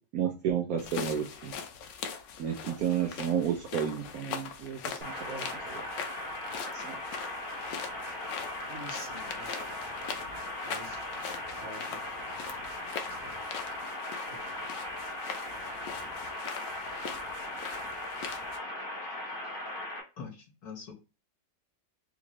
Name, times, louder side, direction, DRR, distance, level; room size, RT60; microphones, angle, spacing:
voice 1, 0.1-1.5 2.4-5.8 6.7-7.2, right 9 dB, 70° right, 0.9 m, -32 dB
sound 1, 0.8-18.6, left 6 dB, 85° left, 1.3 m, -42 dB
sound 2, 5.0-20.0, left 1 dB, 35° left, 1.1 m, -38 dB
voice 2, 8.6-9.7 10.6-11.1 11.6-12.3 13.1-13.4 14.3-14.6, right 1 dB, 40° right, 1.0 m, -48 dB
voice 3, 20.2-20.9, left 5 dB, 65° left, 1.5 m, -43 dB
3.8 x 2.6 x 3.0 m
omnidirectional pair, 1.9 m